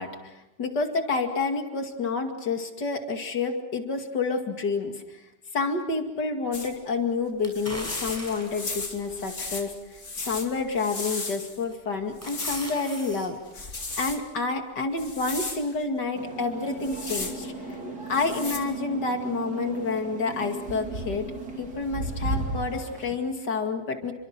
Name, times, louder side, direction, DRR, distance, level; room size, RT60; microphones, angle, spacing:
voice 1, 0.0-5.2 5.5-9.7 10.2-13.4 14.0-17.8 18.1-21.2 21.6-24.1, left 4 dB, 80° left, 5 dB, 3.0 m, -29 dB
sound 1, 6.5-6.7 7.5-11.6 12.2-12.7 13.5-14.2 15.0-15.6 16.7-17.3 18.1-18.6, left 3 dB, 45° left, 3.1 m, -35 dB
sound 2, 7.4-8.7 9.3-9.4 11.0-11.3 11.7-13.3 13.6-13.7, equal, 10° right, 6.3 m, -39 dB
sound 3, 16.1-23.1, right 3 dB, 70° right, 4.1 m, -35 dB
29.5 x 24.5 x 6.0 m, 0.95 s
omnidirectional pair, 1.8 m